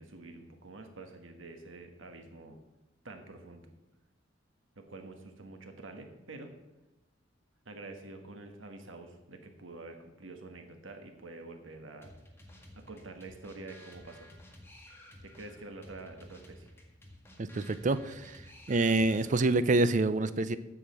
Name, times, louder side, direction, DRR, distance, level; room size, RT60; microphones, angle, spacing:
voice 1, 0.0-2.6 3.0-3.7 4.8-6.5 7.6-12.1 12.7-14.3 15.2-16.7, right 2 dB, 85° right, 5 dB, 1.4 m, -47 dB
sound 1, 12.0-19.6, left 1 dB, 10° left, 1.7 m, -54 dB
voice 2, 17.4-18.4 18.7-20.6, right 2 dB, 40° right, 13 dB, 0.5 m, -27 dB
8.7 x 6.5 x 7.8 m, 1.0 s
head